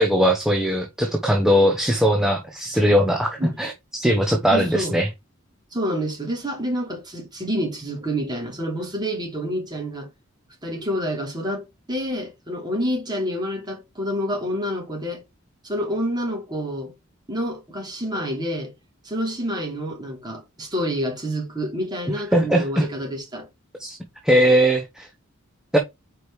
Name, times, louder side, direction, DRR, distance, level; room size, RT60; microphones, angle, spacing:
voice 1, 0.0-5.1 22.3-22.9 23.8-24.0 24.2-25.1 25.7-25.8, equal, ahead, 0.9 m, -20 dB
voice 2, 4.5-5.0 5.7-10.1 10.6-15.2 15.6-16.9 17.3-18.7 19.0-23.5, equal, 20° right, 3.1 m, -28 dB
5.1 x 4.8 x 4.8 m
head